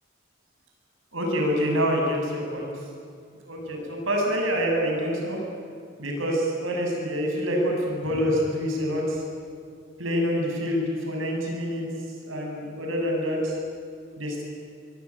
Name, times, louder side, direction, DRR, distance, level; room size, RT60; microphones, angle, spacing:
voice 1, 1.1-2.7 3.5-5.4 6.0-9.2 10.0-11.8 12.2-13.5 14.2-14.4, equal, 75° right, 0 dB, 7.4 m, -26 dB
24.0 x 22.5 x 9.9 m, 2.3 s
head